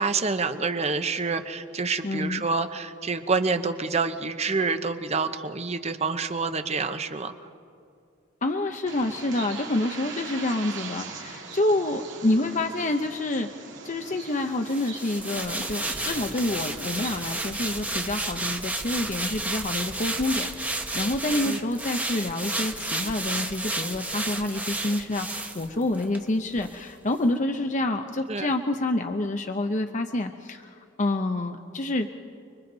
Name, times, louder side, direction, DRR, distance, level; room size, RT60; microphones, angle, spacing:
voice 1, 0.0-7.3 21.4-21.6 28.3-28.5, right 4 dB, 35° right, 9 dB, 0.9 m, -27 dB
voice 2, 2.0-2.4 8.4-13.5 13.8-32.1, left 2 dB, 40° left, 5 dB, 0.7 m, -28 dB
Bird, 8.9-17.4, right 5 dB, 70° right, 2.2 m, -41 dB
sound 1, 14.7-26.2 26.6-26.7, right 2 dB, 10° right, 1.0 m, -32 dB
sound 2, 15.9-21.2, right 1 dB, 55° right, 2.9 m, -48 dB
30.0 x 22.0 x 4.0 m, 2.4 s
head